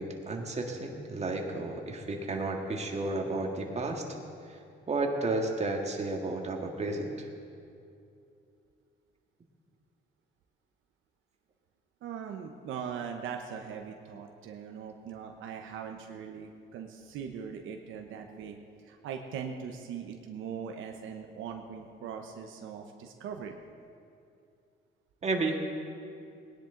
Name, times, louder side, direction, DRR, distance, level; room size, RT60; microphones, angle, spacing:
voice 1, 0.0-4.0 4.5-4.6 4.9-7.3 25.2-25.6, right 2 dB, 35° right, 2 dB, 1.8 m, -32 dB
voice 2, 12.0-18.6 18.8-23.6, right 7 dB, 85° right, 3 dB, 1.0 m, -40 dB
19.5 x 10.5 x 3.9 m, 2.5 s
cardioid pair, 90°, 20 cm